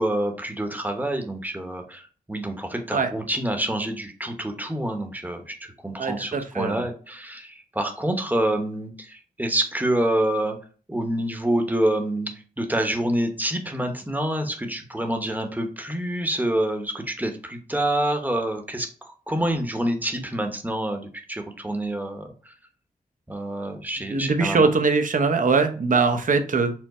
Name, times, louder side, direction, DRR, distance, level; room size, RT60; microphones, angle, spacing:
voice 1, 0.0-2.0 2.3-5.5 5.8-10.6 10.9-12.3 12.6-18.9 19.3-22.3 23.3-24.7, right 1 dB, 10° right, 4 dB, 0.9 m, -27 dB
voice 2, 6.0-6.8 24.1-26.7, right 4 dB, 55° right, 6 dB, 0.7 m, -22 dB
4.5 x 2.1 x 4.2 m, 0.40 s
cardioid pair, 55°, 16 cm